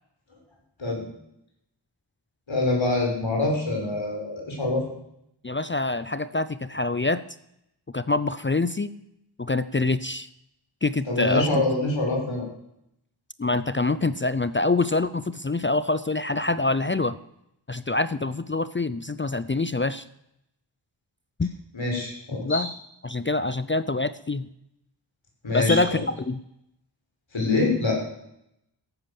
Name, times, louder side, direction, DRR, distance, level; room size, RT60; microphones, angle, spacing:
voice 1, 2.5-4.8 11.1-12.5 21.7-22.6 25.4-26.0 27.3-27.9, left 2 dB, 70° left, 0 dB, 5.9 m, -25 dB
voice 2, 5.4-7.2 7.9-8.9 9.4-10.3 10.8-11.6 13.4-17.2 17.7-20.0 21.4-21.5 22.4-22.7 23.0-24.5 25.5-26.0 26.3-26.4, left 3 dB, 25° left, 15 dB, 0.6 m, -25 dB
14.0 x 11.5 x 7.1 m, 0.79 s
wide cardioid pair, 65°, 48 cm